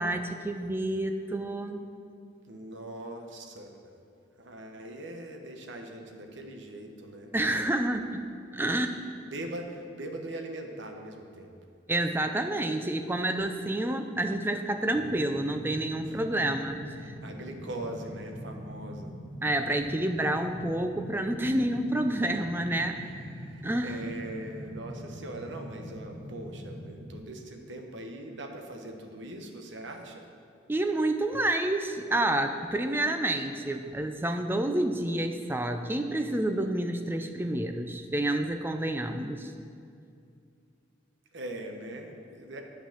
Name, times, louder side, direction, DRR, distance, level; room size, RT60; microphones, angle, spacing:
voice 1, 0.0-1.8 7.3-8.3 8.5-8.9 11.9-16.8 17.0-17.2 19.4-23.0 23.6-24.0 30.7-39.5, right 1 dB, 10° right, 7 dB, 0.4 m, -29 dB
voice 2, 2.4-3.9 4.4-7.3 8.7-8.8 9.2-11.5 16.0-16.2 17.0-19.1 23.0-30.3 41.3-42.6, right 1 dB, 70° right, 3 dB, 1.0 m, -41 dB
sound 1, 14.9-27.2, equal, 55° right, 2.3 m, -43 dB
8.8 x 5.4 x 7.3 m, 2.4 s
head